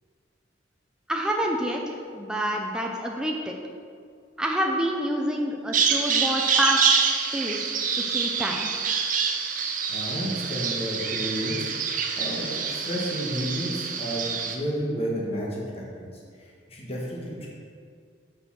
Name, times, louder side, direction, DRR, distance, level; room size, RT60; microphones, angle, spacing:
voice 1, 1.1-3.5 4.4-6.8 7.3-8.7, equal, 5° right, 0 dB, 0.5 m, -28 dB
Bird vocalization bird call bird song, 5.7-14.6, right 6 dB, 45° right, 0.6 m, -26 dB
voice 2, 9.9-16.1 16.4-17.5, equal, 35° left, -4 dB, 1.4 m, -32 dB
6.3 x 5.4 x 5.8 m, 2.1 s
head